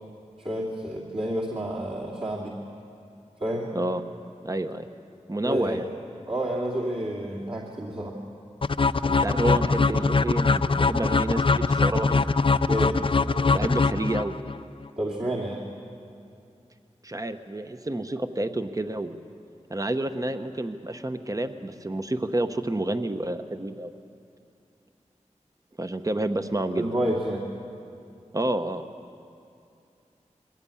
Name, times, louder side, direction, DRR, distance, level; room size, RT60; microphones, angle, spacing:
voice 1, 0.4-2.6 3.4-3.7 5.4-5.8 6.3-8.2 12.7-13.0 15.0-15.6 26.8-27.4, right 1 dB, 45° right, -5 dB, 2.6 m, -29 dB
voice 2, 4.4-4.9 5.3-5.9 9.0-12.3 13.5-14.3 17.0-19.2 19.7-23.9 25.8-26.9 28.3-28.8, right 1 dB, 25° right, 8 dB, 1.0 m, -29 dB
sound 1, 8.6-14.6, left 4 dB, 45° left, 0.4 m, -22 dB
21.5 x 16.5 x 8.5 m, 2.5 s
wide cardioid pair, 55°, 13 cm